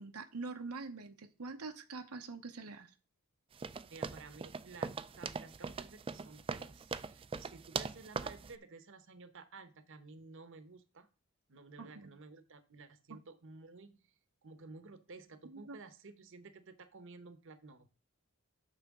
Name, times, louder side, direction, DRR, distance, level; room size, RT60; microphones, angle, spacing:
voice 1, 0.0-2.9 11.8-12.1 13.1-13.2 15.5-15.8, right 3 dB, 90° right, 0.9 m, -45 dB
sound 1, 3.6-8.5, right 5 dB, 25° right, 0.3 m, -41 dB
voice 2, 3.9-11.1 11.5-14.0 14.4-17.9, right 3 dB, 60° right, 0.9 m, -53 dB
9.2 x 6.7 x 3.6 m
head